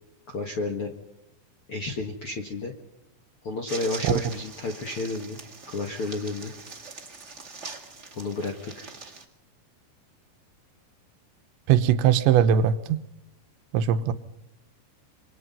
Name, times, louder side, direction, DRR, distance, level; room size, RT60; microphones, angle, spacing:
voice 1, 0.3-0.9 1.7-2.7 3.4-5.4 5.7-6.5 8.1-8.9, left 3 dB, 55° left, 3 dB, 1.5 m, -31 dB
sound 1, 3.7-9.2, right 4 dB, 40° right, 1.0 m, -42 dB
voice 2, 11.7-13.0 13.7-14.1, right 9 dB, 85° right, 11 dB, 3.3 m, -20 dB
27.0 x 24.5 x 5.6 m, 0.85 s
omnidirectional pair, 5.1 m